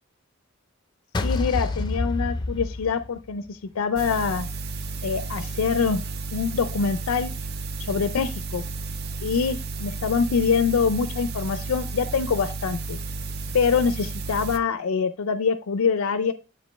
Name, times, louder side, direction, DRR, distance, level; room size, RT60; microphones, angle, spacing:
sound 1, 1.1-3.5, left 2 dB, 20° left, 0.5 m, -27 dB
voice 1, 1.2-4.5 5.0-6.0 6.3-7.3 7.8-8.6 9.2-13.0 13.5-16.3, left 5 dB, 85° left, 11 dB, 0.4 m, -24 dB
sound 2, 4.0-14.6, right 3 dB, 50° right, 0.5 m, -33 dB
7.8 x 5.2 x 3.1 m, 0.32 s
head